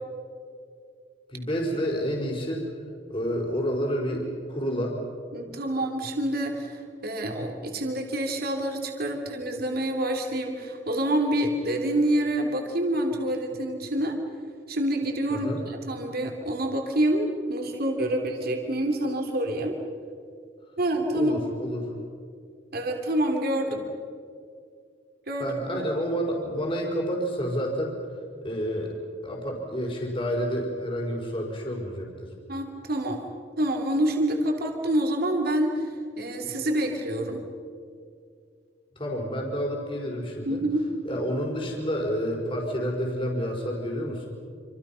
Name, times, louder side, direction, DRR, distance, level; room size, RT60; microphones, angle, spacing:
voice 1, 1.3-2.7 3.1-5.0 15.3-15.6 21.1-21.9 25.4-28.0 28.4-28.9 29.2-32.3 39.0-40.6 41.0-44.3, equal, 30° left, -1 dB, 4.8 m, -29 dB
voice 2, 5.3-14.2 14.7-19.8 20.8-21.3 22.7-23.8 25.3-25.6 32.5-33.2 33.6-35.8 36.2-37.4 40.5-40.9, right 1 dB, 55° right, 3 dB, 3.0 m, -27 dB
27.5 x 27.0 x 5.8 m, 2.2 s
head